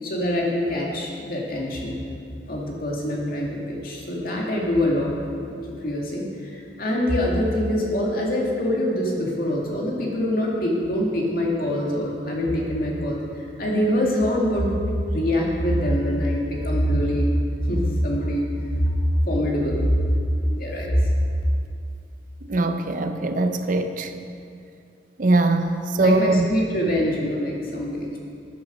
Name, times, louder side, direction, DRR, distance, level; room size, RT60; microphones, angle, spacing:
voice 1, 0.0-2.0 2.5-5.1 5.5-5.6 5.8-13.2 13.6-14.8 15.1-17.3 17.6-18.4 18.7-18.9 19.3-20.0 20.5-21.1 26.0-28.2, equal, 55° left, -2 dB, 2.1 m, -24 dB
voice 2, 22.5-24.1 25.2-26.5, right 2 dB, 50° right, 8 dB, 0.6 m, -21 dB
14.0 x 8.0 x 5.1 m, 2.5 s
head